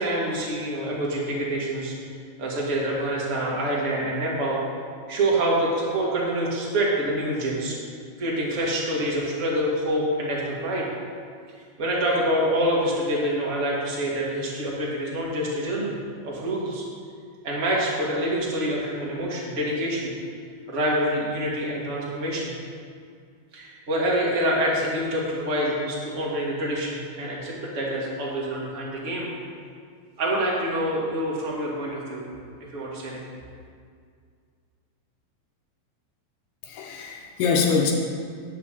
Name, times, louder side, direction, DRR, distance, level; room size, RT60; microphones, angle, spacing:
voice 1, 0.0-4.6 5.1-7.8 8.2-10.8 11.8-15.9 16.2-16.8 17.4-20.1 20.7-22.5 23.5-29.3 30.2-32.3 32.6-33.2, right 1 dB, 30° right, -5 dB, 1.5 m, -26 dB
voice 2, 36.6-37.9, left 5 dB, 75° left, 1 dB, 2.0 m, -24 dB
9.7 x 5.6 x 7.7 m, 2.2 s
omnidirectional pair, 4.3 m